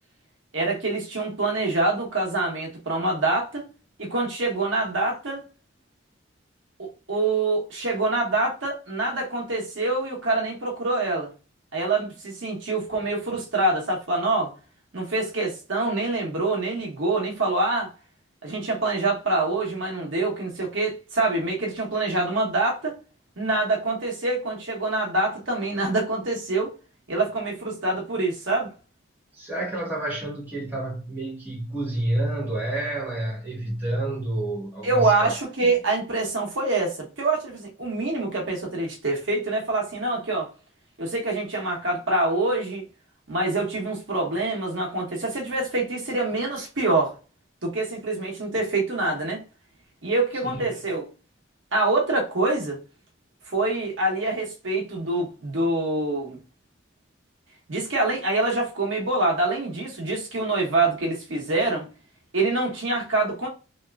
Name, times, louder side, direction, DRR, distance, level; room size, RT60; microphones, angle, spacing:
voice 1, 0.5-3.7 4.0-5.4 6.8-11.3 11.7-14.5 14.9-17.9 18.4-23.0 23.4-26.7 27.1-28.7 34.8-40.5 41.0-42.8 43.3-47.1 47.6-49.4 50.0-51.1 51.7-52.8 53.5-56.4 57.7-61.9 62.3-63.5, right 2 dB, 90° right, 1.1 m, -25 dB
voice 2, 29.3-35.7 50.4-50.6, right 1 dB, 10° right, 1.4 m, -29 dB
3.3 x 2.8 x 2.3 m
head